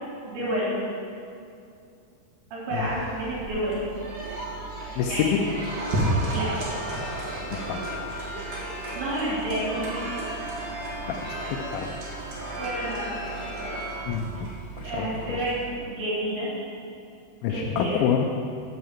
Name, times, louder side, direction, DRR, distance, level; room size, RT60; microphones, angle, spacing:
voice 1, 0.2-0.8 2.5-3.8 4.8-5.4 6.3-6.6 8.5-10.2 12.5-13.8 14.8-16.5 17.5-18.0, right 1 dB, 80° right, -8 dB, 4.4 m, -30 dB
sound 1, 2.7-15.6, right 2 dB, 60° right, 3.0 m, -34 dB
voice 2, 5.0-5.4 7.5-8.0 11.0-11.9 14.1-14.5 14.8-15.2 17.4-18.3, left 8 dB, 80° left, 1 dB, 2.4 m, -27 dB
sound 2, 6.7-14.1, equal, 30° right, 2.4 m, -37 dB
9.7 x 4.7 x 7.2 m, 2.5 s
omnidirectional pair, 4.5 m